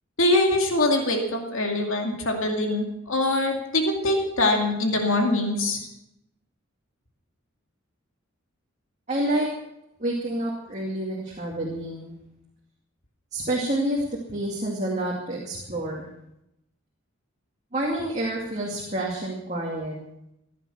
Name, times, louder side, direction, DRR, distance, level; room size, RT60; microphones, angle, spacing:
voice 1, 0.2-5.8, left 2 dB, 70° left, 2 dB, 2.3 m, -23 dB
voice 2, 9.1-9.5 10.0-12.1 13.3-14.0 14.3-16.1 17.7-19.9, right 1 dB, 35° right, -2 dB, 2.4 m, -28 dB
15.5 x 10.5 x 7.2 m, 0.83 s
head